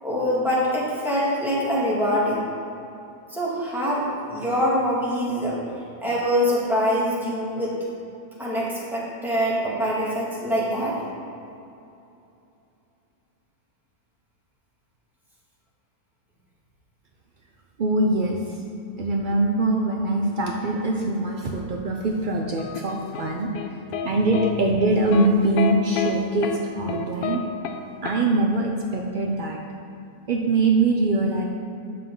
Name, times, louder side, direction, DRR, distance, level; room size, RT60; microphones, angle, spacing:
voice 1, 0.0-2.5 3.3-5.6 6.0-7.8 8.4-11.0, equal, ahead, -7 dB, 1.9 m, -24 dB
voice 2, 17.8-18.6 19.0-23.5 24.0-27.4 28.0-29.6 30.3-31.4, right 2 dB, 70° right, 1 dB, 0.4 m, -23 dB
sound 1, 22.6-24.1 24.3-24.5 25.1-25.3 25.6-26.1 26.4-26.6 26.9-27.4 27.6-27.8 28.1-28.2, left 7 dB, 80° left, 1.1 m, -28 dB
9.4 x 6.5 x 3.8 m, 2.7 s
omnidirectional pair, 1.6 m